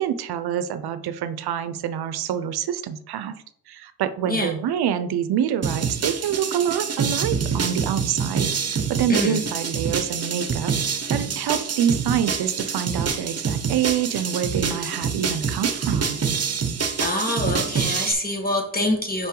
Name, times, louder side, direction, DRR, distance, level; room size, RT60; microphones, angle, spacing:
voice 1, 0.0-3.3 3.7-16.2, right 9 dB, 85° right, 11 dB, 0.6 m, -26 dB
sound 1, 5.6-18.1, right 6 dB, 40° right, 1.0 m, -26 dB
voice 2, 9.1-9.4 14.7-14.8 17.0-19.3, left 1 dB, 25° left, 2 dB, 1.9 m, -25 dB
5.5 x 5.4 x 3.8 m, 0.65 s
cardioid pair, 70°, 37 cm